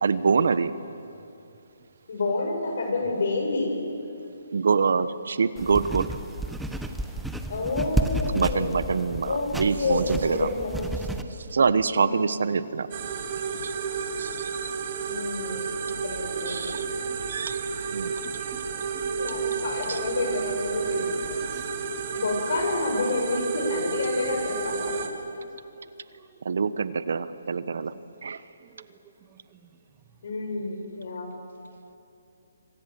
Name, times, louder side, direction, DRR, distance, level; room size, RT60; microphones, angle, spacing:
voice 1, 0.0-0.7 4.5-6.1 8.3-10.5 11.5-12.9 13.5-13.7 14.2-14.7 16.4-16.9 17.3-17.6 17.9-18.1 19.9-20.0 26.4-27.9 28.2-28.4, right 5 dB, 70° right, 14 dB, 1.1 m, -25 dB
voice 2, 2.1-3.8 7.5-11.0 11.9-12.3 15.0-16.7 19.2-21.2 22.1-24.9 30.2-31.3, left 3 dB, 60° left, 2 dB, 7.3 m, -29 dB
sound 1, 5.6-11.2, right 1 dB, 5° right, 1.1 m, -31 dB
voice 3, 11.2-11.6 14.9-15.0 16.4-16.5 16.7-17.2 17.5-17.6 18.2-19.3 21.0-22.1 25.0-25.4 25.8-26.3 28.6-29.7, right 7 dB, 20° right, 6 dB, 1.6 m, -52 dB
sound 2, 12.9-25.1, right 5 dB, 40° right, 2.9 m, -31 dB
26.5 x 25.5 x 7.1 m, 2.7 s
hypercardioid pair, 155°, 0 cm